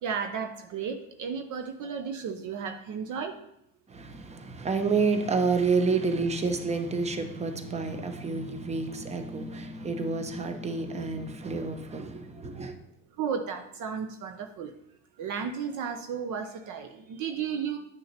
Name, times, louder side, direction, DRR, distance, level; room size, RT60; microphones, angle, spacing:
voice 1, 0.0-3.4 13.2-14.7 15.2-17.8, right 6 dB, 45° right, 0.8 m, -33 dB
voice 2, 3.9-12.7, right 4 dB, 15° right, 0.9 m, -29 dB
10.0 x 6.4 x 2.9 m
hypercardioid pair, 80°, 42 cm